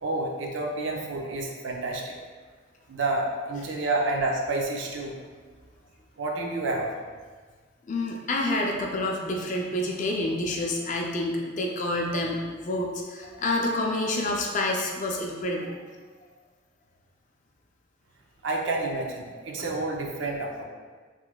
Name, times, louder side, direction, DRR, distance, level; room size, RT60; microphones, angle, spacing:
voice 1, 0.0-2.1 2.9-5.1 6.2-6.9 18.4-20.6, right 2 dB, 70° right, 0 dB, 0.5 m, -29 dB
voice 2, 7.9-15.7, left 1 dB, 40° left, 0 dB, 0.4 m, -28 dB
3.9 x 3.1 x 2.3 m, 1.5 s
head